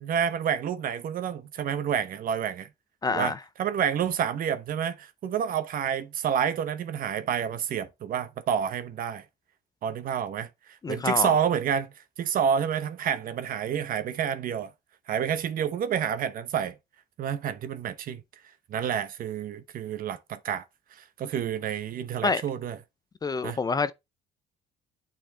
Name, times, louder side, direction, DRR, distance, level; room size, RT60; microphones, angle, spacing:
voice 1, 0.0-2.7 3.1-9.2 9.8-11.9 12.2-14.7 15.1-16.8 17.2-18.2 18.7-20.6 21.2-22.8 23.4-23.6, right 8 dB, 55° right, 0.9 m, -29 dB
voice 2, 3.0-3.4 10.8-11.3 22.2-22.4 23.2-23.9, left 4 dB, 25° left, 0.5 m, -27 dB
8.8 x 4.4 x 3.3 m
cardioid pair, 110°, 17 cm